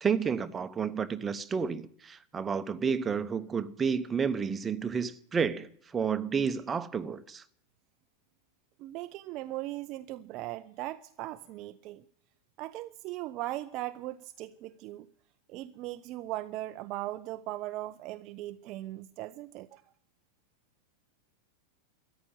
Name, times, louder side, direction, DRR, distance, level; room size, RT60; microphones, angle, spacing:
voice 1, 0.0-7.4, right 6 dB, 20° right, 0.9 m, -31 dB
voice 2, 8.8-12.0 12.6-15.1 15.5-19.8, right 16 dB, 40° right, 0.5 m, -39 dB
14.0 x 10.0 x 9.1 m
figure-of-eight pair, 90°, 0 cm